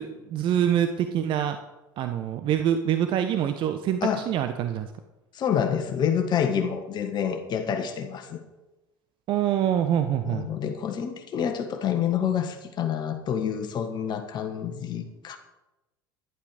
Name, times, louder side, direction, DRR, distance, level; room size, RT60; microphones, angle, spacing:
voice 1, 0.0-1.6 2.0-4.9 9.3-10.5, right 10 dB, 45° right, 8 dB, 0.9 m, -25 dB
voice 2, 5.3-8.4 10.2-15.4, left 8 dB, 40° left, 6 dB, 1.5 m, -28 dB
11.5 x 11.0 x 5.1 m, 1.0 s
figure-of-eight pair, 65°, 12 cm